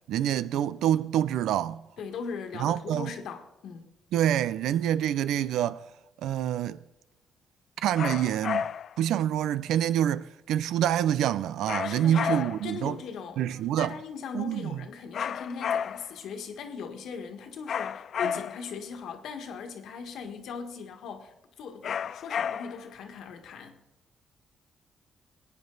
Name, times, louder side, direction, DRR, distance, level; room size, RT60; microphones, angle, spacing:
voice 1, 0.1-1.8 2.6-3.1 4.1-5.8 6.2-6.8 7.8-8.7 9.0-13.0 13.4-13.9 14.3-14.7 18.2-18.3, right 11 dB, 85° right, 0.4 m, -26 dB
voice 2, 2.0-3.9 11.8-23.8, left 6 dB, 75° left, 1.6 m, -39 dB
sound 1, 8.0-9.0 11.7-12.8 15.1-16.2 17.7-18.7 21.8-22.9, left 8 dB, 60° left, 0.4 m, -32 dB
20.0 x 9.2 x 4.0 m
cardioid pair, 90°, 0 cm